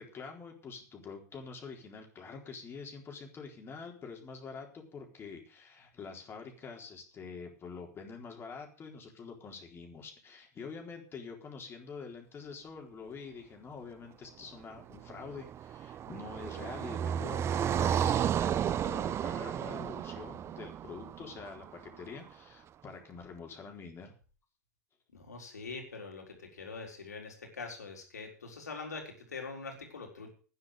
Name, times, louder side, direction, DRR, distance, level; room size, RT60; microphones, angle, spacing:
voice 1, 0.0-24.1, left 5 dB, 25° left, 2 dB, 4.1 m, -46 dB
Car passing by, 14.8-22.0, right 9 dB, 30° right, 0.6 m, -33 dB
voice 2, 25.1-30.3, left 4 dB, 90° left, 3 dB, 4.2 m, -43 dB
12.5 x 9.9 x 6.6 m, 0.38 s
hypercardioid pair, 95°, 9 cm